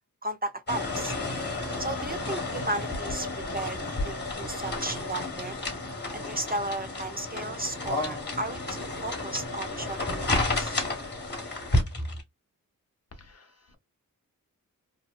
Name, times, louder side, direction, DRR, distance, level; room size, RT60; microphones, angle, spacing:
voice 1, 0.2-1.1 1.8-3.3 3.5-3.8 4.0-5.6 6.1-10.8, right 1 dB, 25° right, 0.5 m, -34 dB
sound 1, 0.7-12.2, left 2 dB, 30° left, 1.0 m, -31 dB
voice 2, 13.1-13.8, left 2 dB, 50° left, 0.7 m, -52 dB
2.8 x 2.1 x 2.3 m
wide cardioid pair, 80°, 33 cm